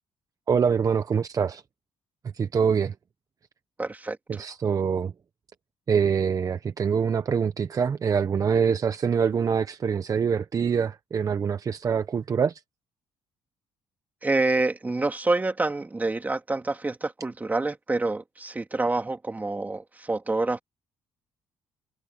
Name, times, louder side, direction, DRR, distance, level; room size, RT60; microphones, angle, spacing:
voice 1, 0.5-1.6 2.3-2.9 4.3-5.1 5.9-12.6, right 6 dB, 40° right, 0.9 m, -24 dB
voice 2, 3.8-4.5 14.2-20.6, right 2 dB, 15° right, 2.6 m, -27 dB
cardioid pair, 110°, 10 cm